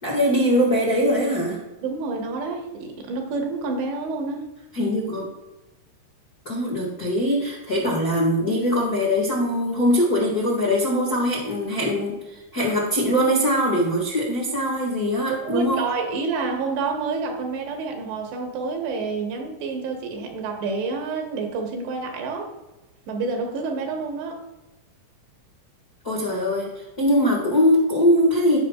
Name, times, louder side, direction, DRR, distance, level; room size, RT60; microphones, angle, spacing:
voice 1, 0.0-1.6 4.7-5.3 6.4-15.8 26.0-28.6, equal, 85° left, -5 dB, 0.8 m, -22 dB
voice 2, 1.8-4.5 15.3-22.5 23.1-24.4, right 4 dB, 75° right, 2 dB, 3.2 m, -28 dB
16.0 x 5.7 x 2.4 m, 1.0 s
omnidirectional pair, 5.2 m